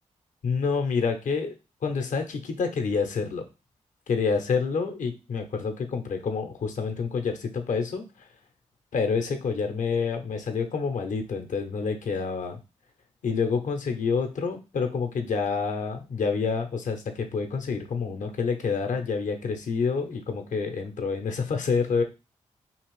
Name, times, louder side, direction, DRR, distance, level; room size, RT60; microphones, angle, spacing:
voice 1, 0.4-1.5 1.8-3.5 4.1-8.3 8.9-12.6 13.2-22.0, left 5 dB, 65° left, 6 dB, 0.7 m, -28 dB
2.8 x 2.5 x 3.1 m, 0.29 s
supercardioid pair, 45°, 14 cm